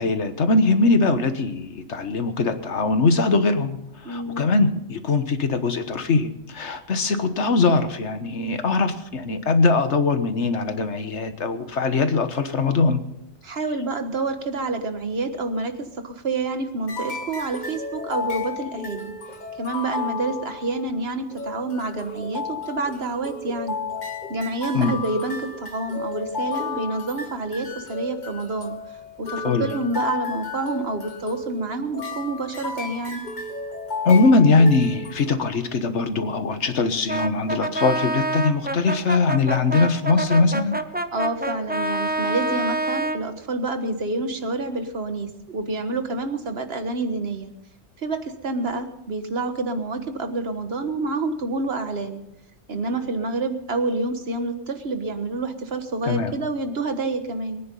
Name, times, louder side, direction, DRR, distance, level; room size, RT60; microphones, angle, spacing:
voice 1, 0.0-3.8 4.0-13.0 24.7-25.0 29.4-29.7 34.0-40.7 56.1-56.3, left 3 dB, 80° left, 9 dB, 1.6 m, -21 dB
voice 2, 4.0-4.4 13.4-15.7 16.0-19.1 19.6-23.8 24.3-28.7 29.2-33.2 41.1-47.5 48.0-52.2 52.7-57.6, right 3 dB, 60° right, 7 dB, 1.7 m, -28 dB
sound 1, 16.9-21.0 21.3-35.3, left 4 dB, 40° left, 1.5 m, -33 dB
Brass instrument, 37.1-43.2, right 2 dB, 10° right, 0.7 m, -27 dB
22.5 x 9.6 x 5.5 m, 0.83 s
omnidirectional pair, 1.2 m